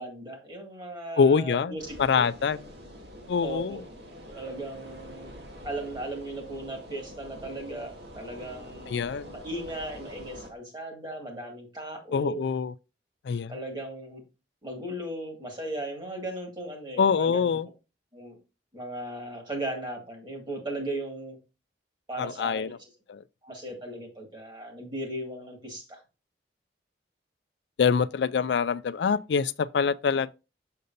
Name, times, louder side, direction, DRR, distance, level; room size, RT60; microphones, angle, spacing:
voice 1, 0.0-2.3 3.4-3.8 4.3-5.4 5.6-12.4 13.5-14.2 14.6-17.6 18.1-18.4 18.7-21.4 22.1-22.8 23.4-26.0, right 1 dB, 25° right, 2.1 m, -37 dB
voice 2, 1.2-2.7 3.3-3.8 8.9-9.3 12.1-12.7 13.2-13.5 17.0-17.7 22.2-22.7 23.1-23.2 27.8-30.3, left 6 dB, 75° left, 0.4 m, -25 dB
sound 1, 1.8-10.5, equal, 70° right, 2.1 m, -46 dB
6.6 x 6.6 x 2.6 m
head